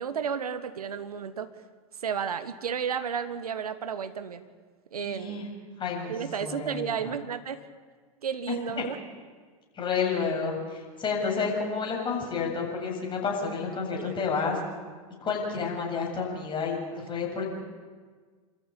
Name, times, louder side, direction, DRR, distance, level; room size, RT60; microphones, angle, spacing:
voice 1, 0.0-1.5 2.0-4.5 4.9-5.5 6.1-7.6 8.2-9.0 14.0-14.1, right 7 dB, 85° right, 11 dB, 1.5 m, -32 dB
voice 2, 5.0-5.5 5.8-6.1 6.4-7.1 8.5-8.8 9.7-14.6 15.2-17.4, left 5 dB, 25° left, -1 dB, 7.7 m, -30 dB
27.0 x 14.0 x 8.8 m, 1.5 s
hypercardioid pair, 100°, 19 cm